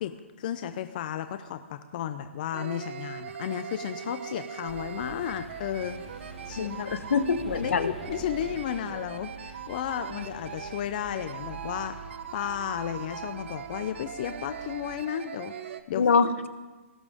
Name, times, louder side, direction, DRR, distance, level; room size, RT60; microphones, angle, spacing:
voice 1, 0.0-6.9 7.5-16.1, left 10 dB, 40° left, 9 dB, 0.7 m, -34 dB
sound 1, 2.5-15.8, right 8 dB, 60° right, 1.0 m, -41 dB
sound 2, 4.7-15.0, right 3 dB, 5° left, 1.6 m, -46 dB
voice 2, 6.6-7.9 16.0-16.5, left 5 dB, 70° left, 11 dB, 1.2 m, -25 dB
18.5 x 16.5 x 3.7 m, 1.2 s
hypercardioid pair, 155°, 7 cm